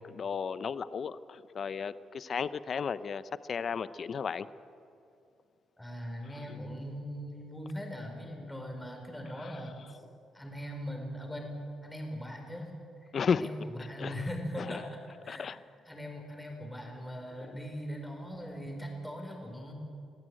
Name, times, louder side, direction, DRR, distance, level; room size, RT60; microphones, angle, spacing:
voice 1, 0.1-3.2 3.5-4.5 6.5-6.6 9.4-9.5 13.1-13.5 13.8-14.1 14.6-14.8 15.3-15.6 17.4-17.6, left 6 dB, 50° left, 15 dB, 0.7 m, -34 dB
voice 2, 5.8-10.0 10.3-11.6 11.8-12.7 13.0-15.5 15.9-19.7, equal, 10° left, 2 dB, 4.9 m, -40 dB
22.5 x 14.5 x 9.0 m, 2.5 s
cardioid pair, 90°, 0 cm